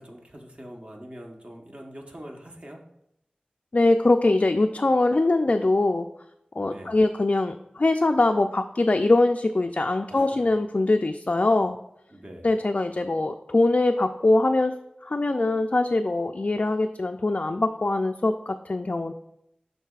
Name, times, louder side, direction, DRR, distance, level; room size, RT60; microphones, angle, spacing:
voice 1, 0.0-2.8 6.6-7.0 10.1-10.4 12.1-12.5, equal, 45° right, 1 dB, 1.1 m, -43 dB
voice 2, 3.7-6.1 6.6-11.8 12.4-19.1, left 2 dB, 50° left, 5 dB, 0.3 m, -22 dB
11.0 x 4.0 x 2.4 m, 0.80 s
wide cardioid pair, 40°, 3 cm